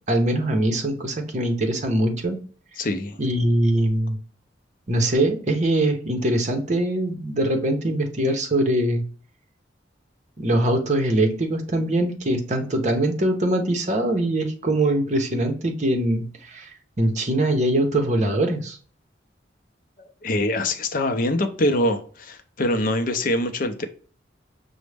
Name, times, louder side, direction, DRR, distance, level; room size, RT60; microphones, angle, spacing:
voice 1, 0.0-2.4 3.2-4.2 4.9-9.0 10.4-18.8, right 1 dB, 40° right, 4 dB, 0.7 m, -22 dB
voice 2, 2.8-3.2 20.0-23.9, left 1 dB, 45° left, 7 dB, 0.5 m, -24 dB
6.0 x 2.1 x 3.3 m, 0.43 s
head